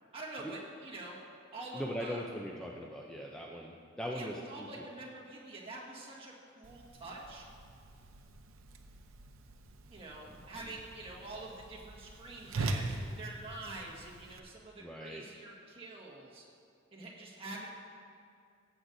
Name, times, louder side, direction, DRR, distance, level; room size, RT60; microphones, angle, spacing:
voice 1, 0.1-1.2 1.5-2.2 4.1-7.4 9.9-16.4 16.9-17.7, right 2 dB, 30° right, -4 dB, 1.6 m, -46 dB
voice 2, 1.7-4.7 14.8-15.2, equal, 5° left, -2 dB, 0.5 m, -40 dB
Whoosh swoosh swish, 6.6-14.4, right 2 dB, 80° right, 0.7 m, -42 dB
16.0 x 7.8 x 2.6 m, 2.4 s
head